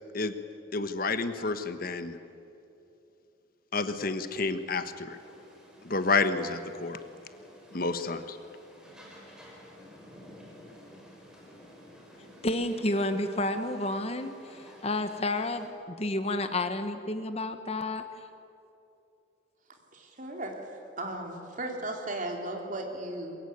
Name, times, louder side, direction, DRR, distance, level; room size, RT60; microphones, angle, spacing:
voice 1, 0.7-2.2 3.7-5.2 5.8-7.0 7.7-8.4, left 3 dB, 50° left, 10 dB, 1.2 m, -29 dB
sound 1, 5.1-15.7, equal, 5° right, 4.8 m, -52 dB
voice 2, 12.4-18.0, left 2 dB, 30° left, 9 dB, 1.2 m, -30 dB
voice 3, 19.9-20.5 21.0-23.4, right 1 dB, 40° right, 2 dB, 3.6 m, -36 dB
22.5 x 21.5 x 9.4 m, 2.7 s
head